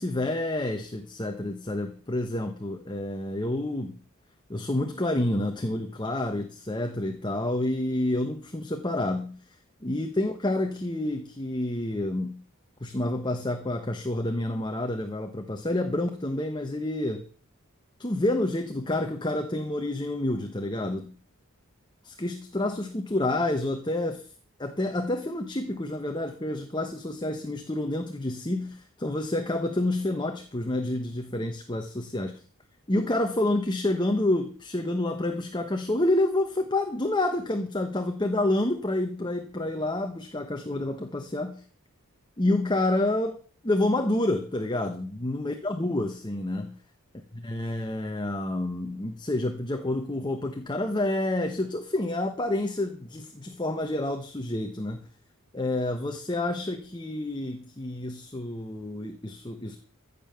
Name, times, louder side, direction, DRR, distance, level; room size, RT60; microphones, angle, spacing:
voice 1, 0.0-4.0 4.5-9.3 9.8-12.4 12.8-17.2 18.0-21.1 22.0-24.3 24.6-32.4 32.9-41.6 42.4-43.4 43.6-46.7 47.3-55.1 55.5-59.8, left 1 dB, 20° left, 6 dB, 1.1 m, -28 dB
15.0 x 7.0 x 6.8 m, 0.41 s
head